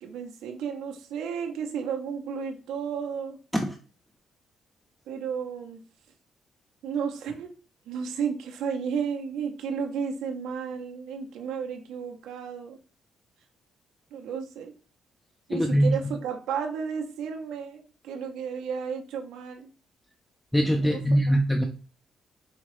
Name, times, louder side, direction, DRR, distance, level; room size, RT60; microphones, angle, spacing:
voice 1, 0.0-3.4 5.1-5.8 6.8-7.5 7.9-12.8 14.1-14.7 15.5-19.7 20.7-21.0, right 6 dB, 85° right, 3 dB, 0.8 m, -33 dB
voice 2, 15.5-16.1 20.5-21.7, equal, 5° left, 3 dB, 0.5 m, -23 dB
5.0 x 3.0 x 3.0 m, 0.37 s
cardioid pair, 90°, 0 cm